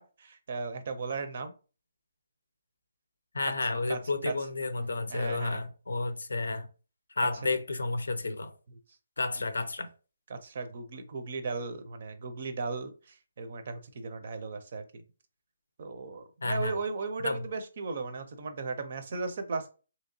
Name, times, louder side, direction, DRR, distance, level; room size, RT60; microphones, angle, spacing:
voice 1, 0.0-1.5 3.9-4.0 4.3-4.4 5.1-5.6 10.3-15.0 15.8-19.7, right 4 dB, 55° right, 0.6 m, -36 dB
voice 2, 3.3-6.7 7.2-8.5 9.2-9.9 16.4-16.7 17.2-17.4, left 3 dB, 85° left, 0.5 m, -31 dB
3.0 x 2.8 x 2.7 m
hypercardioid pair, 155°, 0 cm